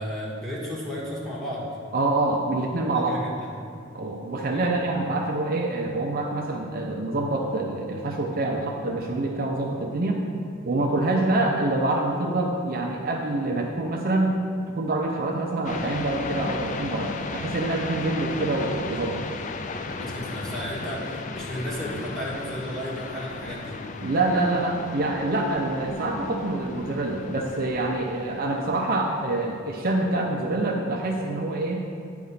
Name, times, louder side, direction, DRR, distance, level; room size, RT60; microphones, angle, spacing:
voice 1, 0.0-1.7 2.9-3.5 4.5-4.9 19.9-23.7, equal, ahead, -7 dB, 1.5 m, -33 dB
voice 2, 1.9-3.2 3.9-10.2 10.6-14.3 14.7-19.2 24.0-31.8, right 2 dB, 45° right, 0 dB, 0.6 m, -26 dB
sound 1, 15.6-29.5, left 3 dB, 40° left, 0.3 m, -35 dB
9.3 x 3.6 x 5.6 m, 2.3 s
head